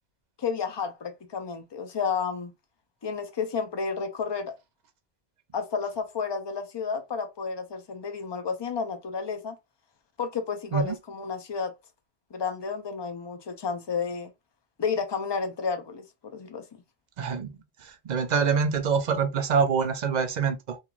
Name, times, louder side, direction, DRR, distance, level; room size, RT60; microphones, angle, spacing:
voice 1, 0.4-2.5 3.0-4.5 5.5-9.6 10.2-11.7 12.3-14.3 14.8-16.6, left 5 dB, 45° left, 0.3 m, -31 dB
voice 2, 17.2-20.8, right 6 dB, 55° right, 0.5 m, -26 dB
3.0 x 2.4 x 2.4 m
omnidirectional pair, 1.1 m